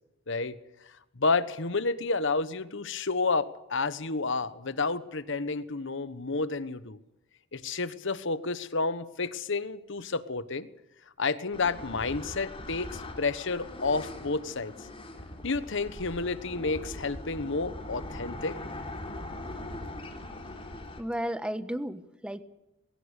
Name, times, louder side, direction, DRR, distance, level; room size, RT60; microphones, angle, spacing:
voice 1, 0.9-7.0 7.5-10.7 11.2-14.9 15.4-18.6, left 3 dB, 65° left, 14 dB, 1.2 m, -30 dB
sound 1, 11.5-21.0, left 1 dB, 25° left, 3.5 m, -41 dB
voice 2, 21.0-22.4, equal, 5° right, 12 dB, 1.2 m, -33 dB
21.5 x 18.0 x 8.2 m, 0.94 s
head